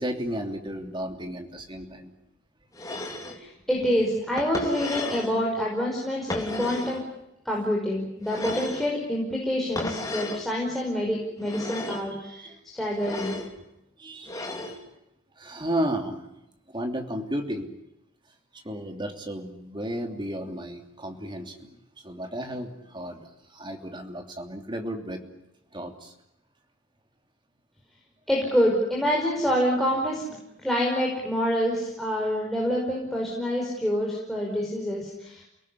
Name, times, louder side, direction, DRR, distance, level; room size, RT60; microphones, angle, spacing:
voice 1, 0.0-2.1 12.2-12.6 14.0-14.4 15.4-16.3 16.7-17.7 18.6-21.7 22.0-25.2 25.7-26.1, right 1 dB, 20° right, 4 dB, 3.1 m, -33 dB
sound 1, 2.7-3.4 4.4-5.3 6.3-7.0 8.2-8.9 9.8-10.5 11.4-12.1 12.9-13.5 14.2-14.8, left 2 dB, 15° left, 3.4 m, -34 dB
voice 2, 3.4-7.0 7.5-12.5 12.7-13.4 28.3-35.5, equal, ahead, -3 dB, 5.2 m, -27 dB
29.5 x 18.5 x 9.8 m, 0.85 s
head